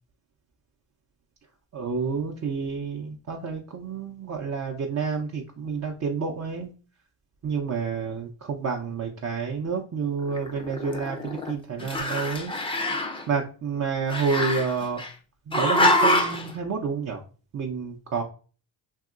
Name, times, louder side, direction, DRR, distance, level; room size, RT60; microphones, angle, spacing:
voice 1, 1.7-6.7 7.4-12.5 13.3-15.0 15.5-17.2 17.5-18.2, right 5 dB, 35° right, 0 dB, 0.5 m, -29 dB
Growling, 10.3-11.5 11.8-13.2 14.1-15.1 15.5-16.5, left 1 dB, 10° left, 0.5 m, -25 dB
2.8 x 2.7 x 2.4 m, 0.37 s
supercardioid pair, 65°, 50 cm